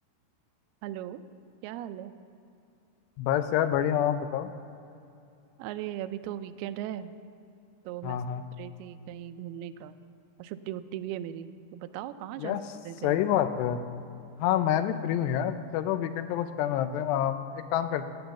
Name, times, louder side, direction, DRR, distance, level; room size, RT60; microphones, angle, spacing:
voice 1, 0.8-1.2 1.6-2.1 5.6-7.1 7.9-8.2 8.6-10.0 10.4-12.6 12.9-13.2, right 11 dB, 80° right, 10 dB, 2.5 m, -38 dB
voice 2, 3.2-4.5 8.0-8.4 12.4-12.6 13.0-13.8 14.4-18.1, left 10 dB, 90° left, 10 dB, 2.9 m, -27 dB
17.5 x 10.5 x 7.1 m, 2.6 s
omnidirectional pair, 4.8 m